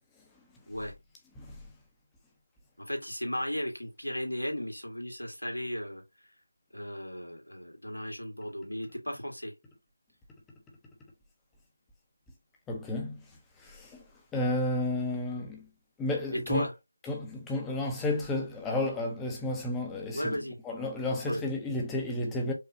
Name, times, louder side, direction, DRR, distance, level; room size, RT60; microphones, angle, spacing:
voice 1, 2.8-6.0 6.7-9.5 16.3-16.7 20.1-20.6 21.2-21.4, equal, 85° left, 1.7 m, -35 dB
voice 2, 12.7-13.1 13.6-14.0 14.3-15.7 16.0-16.7 17.1-20.4 20.6-22.5, left 2 dB, 5° left, 0.6 m, -32 dB
4.7 x 2.2 x 2.6 m
figure-of-eight pair, 165°, 0 cm